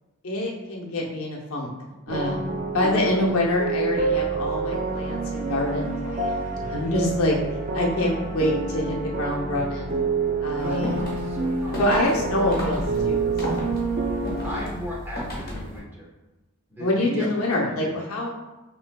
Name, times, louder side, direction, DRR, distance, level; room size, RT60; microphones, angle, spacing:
voice 1, 0.2-1.7 2.1-7.4 7.7-9.9 10.4-11.1 11.8-13.8 16.8-18.3, left 1 dB, 80° left, -2 dB, 0.7 m, -26 dB
sound 1, 2.1-14.6, right 3 dB, 35° right, 0.5 m, -28 dB
voice 2, 2.9-3.4 10.6-11.8 14.4-16.1 16.7-17.9, right 1 dB, 10° right, -6 dB, 1.0 m, -36 dB
sound 2, 10.6-15.8, equal, 45° left, 1.1 m, -33 dB
5.9 x 3.1 x 2.2 m, 1.1 s
head